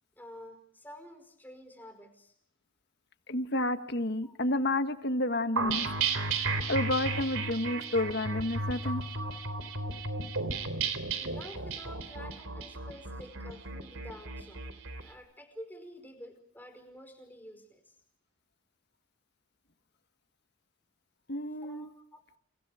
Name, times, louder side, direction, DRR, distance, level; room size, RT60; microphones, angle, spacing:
voice 1, 0.2-2.3 4.2-4.4 11.2-14.7 15.0-17.9 21.6-22.2, equal, 10° left, 5 dB, 5.1 m, -49 dB
voice 2, 3.3-5.9 6.7-9.0 21.3-21.9, left 1 dB, 55° left, 9 dB, 1.6 m, -30 dB
sound 1, 5.6-15.0, right 4 dB, 90° right, 3.5 m, -34 dB
29.5 x 29.0 x 5.0 m, 0.65 s
head